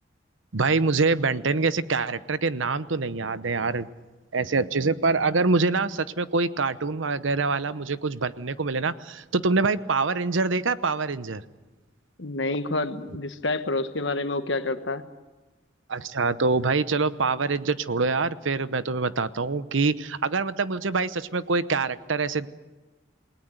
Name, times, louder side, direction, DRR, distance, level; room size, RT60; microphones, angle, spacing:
voice 1, 0.5-3.9 4.3-11.4 15.9-22.5, right 4 dB, 80° right, 14 dB, 0.9 m, -25 dB
voice 2, 12.2-15.1, left 2 dB, 65° left, 9 dB, 1.4 m, -28 dB
28.5 x 19.0 x 8.0 m, 1.2 s
head